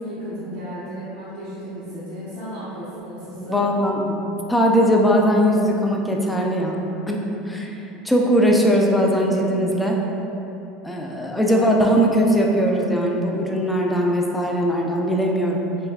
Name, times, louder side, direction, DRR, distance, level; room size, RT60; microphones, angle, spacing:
voice 1, 0.0-3.7 11.4-11.9, equal, 90° right, -10 dB, 0.7 m, -34 dB
voice 2, 3.5-4.2 4.5-6.8 7.1-7.7 8.0-10.0 10.8-15.6, equal, 5° left, -1 dB, 0.3 m, -20 dB
3.3 x 3.1 x 2.3 m, 2.9 s
supercardioid pair, 135°, 0 cm